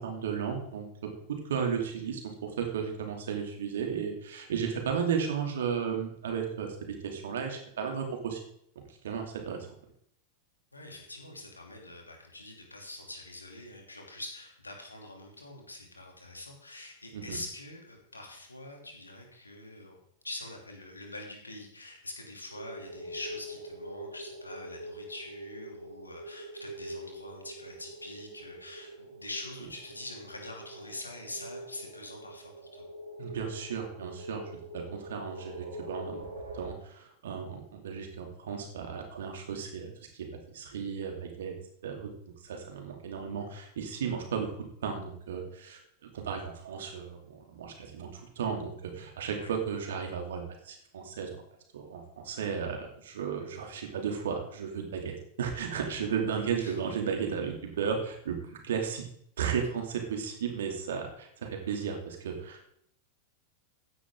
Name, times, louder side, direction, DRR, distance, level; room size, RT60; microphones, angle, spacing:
voice 1, 0.0-6.7 7.0-8.4 9.0-9.7 17.1-17.4 33.2-34.4 34.7-36.2 36.5-39.9 40.5-41.5 41.8-42.1 42.4-44.5 44.8-45.8 46.1-51.3 51.7-58.4 58.6-59.0 59.4-62.7, right 7 dB, 60° right, 3 dB, 2.8 m, -34 dB
voice 2, 10.7-20.0 20.2-32.9 49.3-49.5 56.6-56.8, left 2 dB, 80° left, 2 dB, 2.8 m, -44 dB
sound 1, 22.5-36.7, right 1 dB, 80° right, 2.4 m, -44 dB
15.0 x 10.0 x 3.8 m, 0.68 s
figure-of-eight pair, 90°, 0 cm